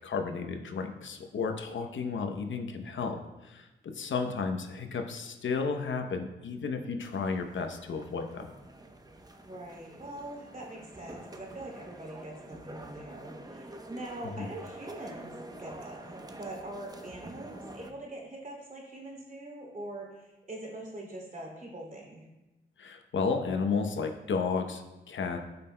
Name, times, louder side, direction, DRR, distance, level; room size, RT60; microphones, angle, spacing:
voice 1, 0.0-3.2 3.4-3.7 3.9-8.5 14.4-14.5 22.8-24.8 25.1-25.4, left 5 dB, 75° left, 5 dB, 0.8 m, -32 dB
sound 1, 7.0-17.9, right 1 dB, 20° right, 0.8 m, -47 dB
voice 2, 9.4-22.3, right 1 dB, 40° right, -1 dB, 2.7 m, -43 dB
12.0 x 5.5 x 2.2 m, 1.0 s
cardioid pair, 65°, 20 cm